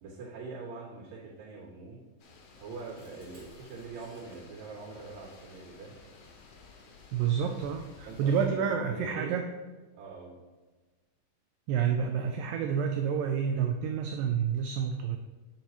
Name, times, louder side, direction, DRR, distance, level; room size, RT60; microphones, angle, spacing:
voice 1, 0.0-2.0 2.6-6.0 8.1-9.4 9.9-10.4, right 4 dB, 70° right, -9 dB, 4.3 m, -43 dB
sound 1, 2.2-8.5, left 4 dB, 80° left, 1.4 m, -54 dB
sound 2, 2.6-4.4 7.0-7.3 7.8-8.6, right 1 dB, 30° right, 1.1 m, -56 dB
voice 2, 7.1-9.4 11.7-15.2, right 7 dB, 90° right, 4 dB, 1.9 m, -29 dB
9.9 x 5.8 x 3.0 m, 1.3 s
omnidirectional pair, 4.5 m